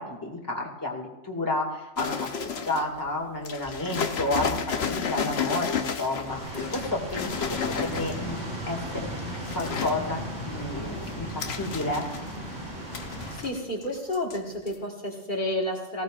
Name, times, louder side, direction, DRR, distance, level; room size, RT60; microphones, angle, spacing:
voice 1, 0.0-8.4 8.7-9.1 9.5-12.1, left 2 dB, 15° left, 0 dB, 2.2 m, -31 dB
sound 1, 2.0-3.0 3.5-8.4 9.1-10.0 10.4-12.5 12.9-13.9 14.1-14.4 14.7-14.8, left 6 dB, 65° left, 1.1 m, -32 dB
sound 2, 6.3-13.4, right 1 dB, 75° right, 6.0 m, -36 dB
voice 2, 13.3-16.0, left 1 dB, 45° left, -2 dB, 1.9 m, -30 dB
19.5 x 16.0 x 2.5 m, 0.96 s
omnidirectional pair, 1.2 m